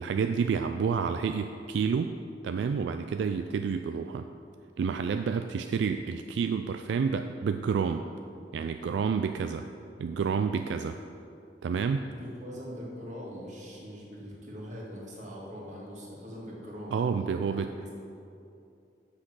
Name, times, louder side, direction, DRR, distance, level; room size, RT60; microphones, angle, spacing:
voice 1, 0.0-2.1 2.4-4.3 4.8-8.0 8.5-9.7 10.0-11.0 11.6-12.0 16.9-17.9, right 6 dB, 75° right, 7 dB, 0.3 m, -29 dB
voice 2, 12.0-17.0 17.3-17.6, equal, 45° right, -4 dB, 2.0 m, -42 dB
7.5 x 6.4 x 6.0 m, 2.7 s
head